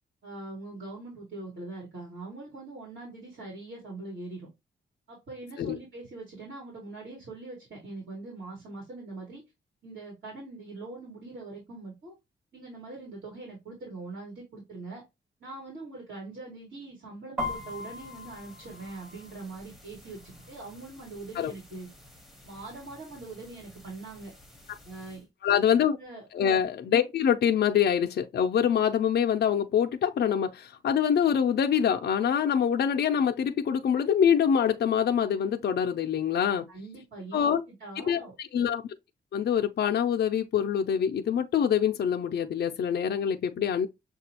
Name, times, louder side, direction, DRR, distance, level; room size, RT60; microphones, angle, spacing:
voice 1, 0.2-4.5 5.1-9.4 9.8-12.1 12.5-15.0 15.4-21.9 22.4-24.3 24.8-25.3 26.0-26.3 36.7-37.5 37.8-38.3, right 3 dB, 55° right, 2.3 m, -42 dB
sound 1, 17.4-25.2, left 2 dB, ahead, 0.9 m, -43 dB
voice 2, 25.4-26.0 26.3-36.7 37.3-37.6 38.1-38.8 39.3-43.9, left 8 dB, 60° left, 0.4 m, -25 dB
6.6 x 2.3 x 2.7 m
wide cardioid pair, 130°, 20 cm